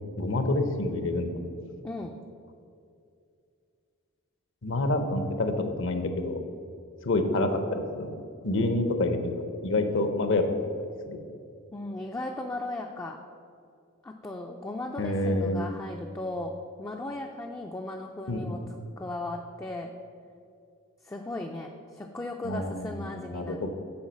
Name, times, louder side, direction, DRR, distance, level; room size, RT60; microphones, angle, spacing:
voice 1, 0.2-1.3 4.6-6.4 7.0-8.1 8.4-10.6 11.1-11.2 15.0-15.6 18.3-18.6 22.4-23.7, left 2 dB, 60° left, 7 dB, 0.7 m, -28 dB
voice 2, 11.7-13.2 14.0-16.5 16.8-18.6 19.0-19.9 21.0-23.6, left 2 dB, 15° left, 2 dB, 0.3 m, -36 dB
7.1 x 4.5 x 6.3 m, 2.4 s
head